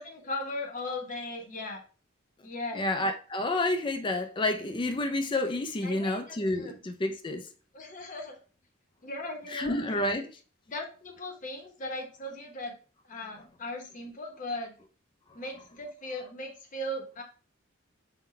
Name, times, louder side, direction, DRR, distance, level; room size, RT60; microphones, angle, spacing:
voice 1, 0.0-1.8 2.4-2.9 5.8-6.8 7.7-8.4 9.0-10.1 10.7-12.8 13.0-14.7 15.3-17.2, left 1 dB, 40° left, 0.8 m, -38 dB
voice 2, 2.7-7.5 9.5-10.3, left 2 dB, 25° left, 0.4 m, -29 dB
3.8 x 2.2 x 4.2 m
head